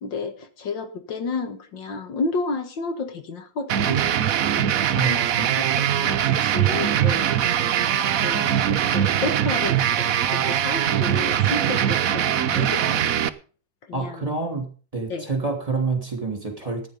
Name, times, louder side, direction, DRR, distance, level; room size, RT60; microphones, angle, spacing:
voice 1, 0.0-4.0 4.6-7.3 8.2-13.1 13.9-14.3 15.1-15.3, left 4 dB, 65° left, 8 dB, 2.0 m, -31 dB
sound 1, 3.7-13.3, right 10 dB, 60° right, 0.9 m, -22 dB
voice 2, 4.9-5.5 13.9-14.7 14.9-16.9, right 4 dB, 15° right, 4 dB, 3.0 m, -27 dB
14.5 x 9.9 x 5.3 m, 0.40 s
omnidirectional pair, 2.2 m